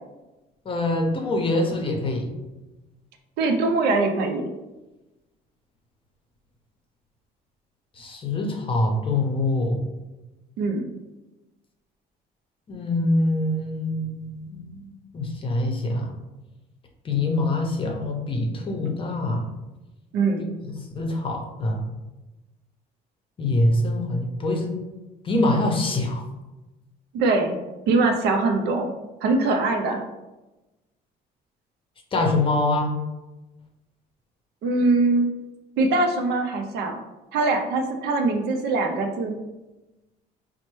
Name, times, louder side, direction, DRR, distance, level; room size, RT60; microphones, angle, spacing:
voice 1, 0.7-2.3 8.0-9.8 12.7-16.1 17.0-19.4 20.6-21.8 23.4-24.7 25.2-26.2 32.1-32.9, left 2 dB, 30° left, 2 dB, 0.6 m, -24 dB
voice 2, 3.4-4.5 10.6-10.9 20.1-20.5 27.1-27.6 27.9-28.9 29.2-30.0 34.6-35.3 35.8-36.9 37.3-39.4, right 3 dB, 85° right, 4 dB, 0.5 m, -22 dB
4.2 x 2.1 x 3.1 m, 1.1 s
cardioid pair, 110°, 17 cm